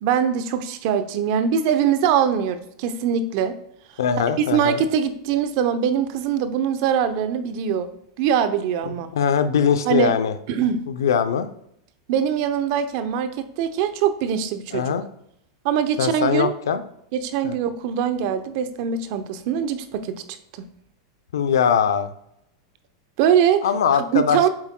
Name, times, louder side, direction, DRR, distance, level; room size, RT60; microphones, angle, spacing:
voice 1, 0.0-3.6 4.2-7.9 8.2-9.1 9.9-10.1 10.5-10.9 12.1-14.9 15.6-16.5 17.1-20.4 23.2-23.6 24.1-24.5, right 8 dB, 55° right, 10 dB, 0.8 m, -22 dB
voice 2, 4.0-4.8 8.9-10.3 10.9-11.5 14.7-15.0 16.0-16.8 17.4-17.5 21.3-22.1 23.6-24.5, left 7 dB, 85° left, 10 dB, 0.6 m, -21 dB
7.6 x 7.3 x 2.3 m, 0.76 s
hypercardioid pair, 125°, 2 cm